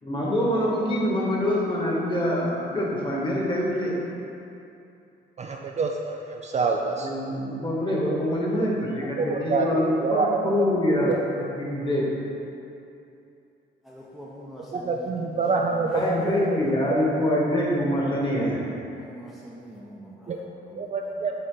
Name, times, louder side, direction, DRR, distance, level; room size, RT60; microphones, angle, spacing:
voice 1, 0.0-4.0 7.0-12.1 15.9-18.7, left 1 dB, 25° left, -4 dB, 1.4 m, -25 dB
voice 2, 5.4-7.1 8.1-8.2 8.5-8.7 9.2-10.5 10.9-11.2 14.7-16.6 16.9-17.0 20.3-20.4 20.7-21.3, right 4 dB, 35° right, 1 dB, 0.4 m, -26 dB
voice 3, 13.8-16.6 18.9-21.2, equal, ahead, -5 dB, 0.7 m, -45 dB
7.7 x 3.6 x 3.9 m, 2.7 s
cardioid pair, 90°, 20 cm